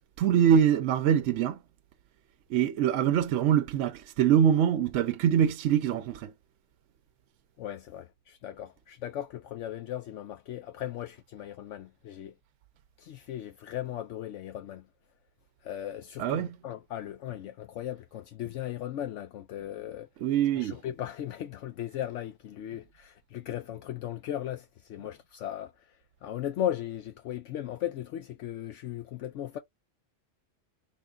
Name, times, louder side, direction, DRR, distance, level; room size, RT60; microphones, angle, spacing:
voice 1, 0.2-1.6 2.5-6.3 16.2-16.6 20.2-20.8, right 9 dB, 75° right, 0.9 m, -24 dB
voice 2, 7.6-12.3 13.0-14.9 15.6-20.1 20.6-29.6, left 11 dB, 75° left, 0.9 m, -37 dB
3.7 x 2.3 x 3.7 m
omnidirectional pair, 1.3 m